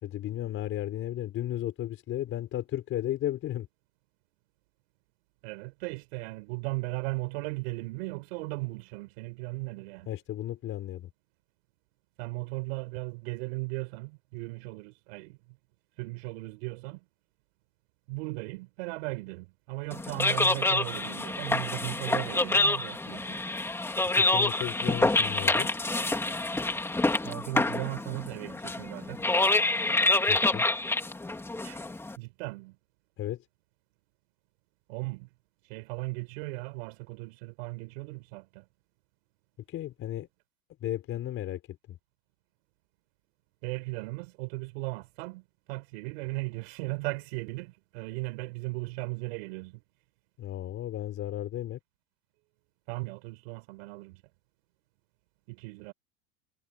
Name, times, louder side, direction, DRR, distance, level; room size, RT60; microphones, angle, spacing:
voice 1, 0.0-3.7 10.1-11.1 24.1-25.7 30.3-30.6 33.2-33.4 39.7-40.3 40.8-41.6 41.9-42.0 50.4-51.8, left 13 dB, 40° left, 4.9 m, -34 dB
voice 2, 5.4-10.1 12.2-15.4 16.0-17.0 18.1-23.4 27.2-29.6 31.6-31.8 32.2-32.8 34.9-35.3 35.7-38.7 43.6-49.8 52.9-54.2 55.5-55.9, right 26 dB, 70° right, 6.1 m, -37 dB
sound 1, 19.9-32.2, left 2 dB, 5° left, 2.5 m, -27 dB
supercardioid pair, 125°, 33 cm